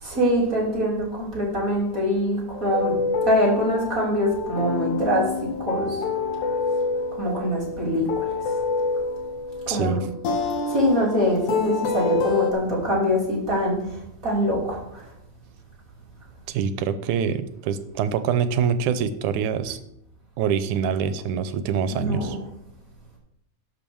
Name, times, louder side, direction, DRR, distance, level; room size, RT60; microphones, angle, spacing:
voice 1, 0.0-2.9 3.2-5.3 5.6-6.0 7.1-8.4 9.7-10.0 10.7-13.8 14.2-15.0 21.9-22.4, equal, 25° right, -4 dB, 3.5 m, -23 dB
sound 1, 2.5-12.5, left 4 dB, 75° left, 2.5 m, -27 dB
voice 2, 9.7-10.0 16.5-19.8 20.4-22.4, right 7 dB, 85° right, 12 dB, 2.2 m, -25 dB
11.5 x 5.3 x 7.0 m, 0.79 s
omnidirectional pair, 3.4 m